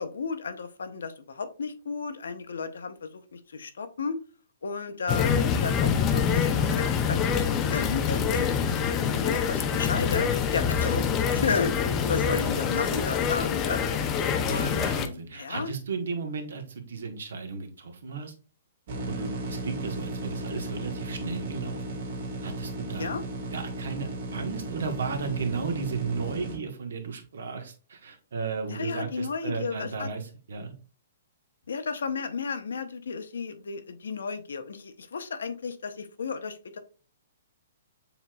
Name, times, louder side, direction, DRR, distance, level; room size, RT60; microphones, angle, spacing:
voice 1, 0.0-4.2 4.6-7.4 7.7-8.8 9.3-11.0 11.3-11.7 12.1-13.8 14.4-14.9 15.3-15.7 23.0-23.2 28.7-30.1 31.7-36.8, left 5 dB, 90° left, 9 dB, 0.8 m, -33 dB
sound 1, 5.1-15.1, left 7 dB, 20° left, 0.5 m, -25 dB
voice 2, 14.5-18.3 19.1-21.8 22.4-23.1 23.5-30.7, right 5 dB, 80° right, 5 dB, 1.2 m, -34 dB
sound 2, 18.9-26.6, right 2 dB, 55° right, 1.9 m, -35 dB
6.9 x 3.0 x 2.3 m, 0.36 s
hypercardioid pair, 155°, 0 cm